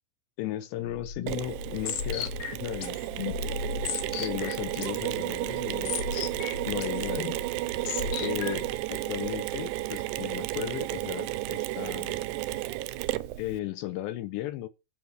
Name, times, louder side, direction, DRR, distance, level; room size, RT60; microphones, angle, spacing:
voice 1, 0.4-2.3 2.6-3.0 4.2-5.9 6.6-7.4 8.2-12.2 13.4-14.7, left 14 dB, 80° left, 2.7 m, -35 dB
sound 1, 0.8-8.8, left 7 dB, 60° left, 3.3 m, -36 dB
Mechanisms, 1.3-13.6, right 17 dB, 85° right, 2.4 m, -33 dB
15.5 x 5.5 x 8.0 m
omnidirectional pair, 5.8 m